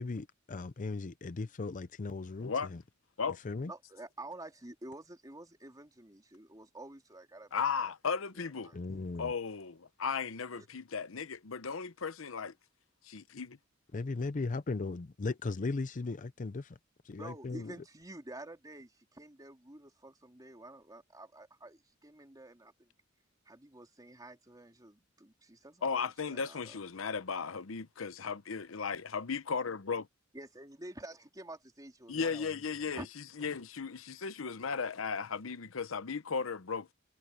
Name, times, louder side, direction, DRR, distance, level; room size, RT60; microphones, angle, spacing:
voice 1, 0.0-2.8 3.4-3.7 8.7-9.3 13.9-16.8 17.0-17.8, left 3 dB, 40° left, 0.5 m, -37 dB
voice 2, 3.7-7.9 8.3-8.8 10.5-10.7 17.2-22.9 23.5-26.8 30.3-33.1 33.4-33.5, right 1 dB, 20° right, 3.4 m, -49 dB
voice 3, 7.5-8.7 9.2-12.5 13.0-13.6 25.8-30.1 32.1-33.0 33.4-36.9, left 5 dB, 85° left, 0.8 m, -36 dB
head